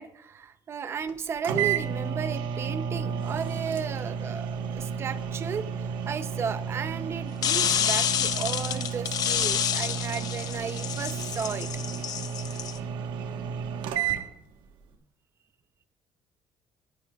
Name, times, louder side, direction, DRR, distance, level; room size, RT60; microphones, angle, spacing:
voice 1, 0.0-11.7, right 6 dB, 30° right, 12 dB, 0.6 m, -34 dB
sound 1, 1.1-1.2 1.4-14.2, right 7 dB, 80° right, 1.3 m, -32 dB
sound 2, 7.4-12.8, left 9 dB, 50° left, 0.8 m, -28 dB
19.5 x 11.0 x 2.4 m, 0.75 s
cardioid pair, 160°, 8 cm